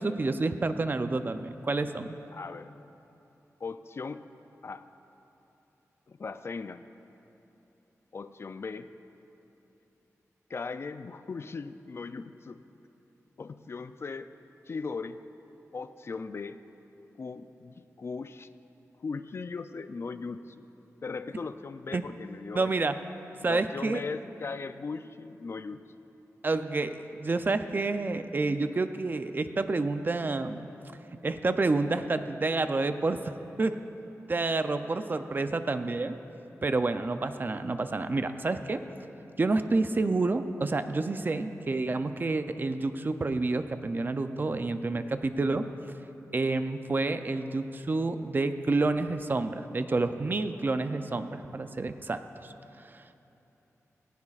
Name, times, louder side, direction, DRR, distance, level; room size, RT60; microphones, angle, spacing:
voice 1, 0.0-2.1 21.9-22.0 22.5-23.0 23.4-24.0 26.4-30.7 31.2-33.3 33.6-33.8 34.3-36.2 36.6-38.8 39.4-45.7 46.3-52.5 52.8-53.3, right 3 dB, 35° right, 9 dB, 0.5 m, -29 dB
voice 2, 2.3-2.7 3.6-4.2 4.6-4.8 6.1-6.8 8.1-8.9 10.5-12.6 13.4-14.3 14.7-15.2 15.7-16.6 17.2-18.5 19.0-20.7 21.0-22.7 23.5-25.9, left 4 dB, 50° left, 11 dB, 0.4 m, -38 dB
18.5 x 16.0 x 2.4 m, 3.0 s
wide cardioid pair, 125°, 6 cm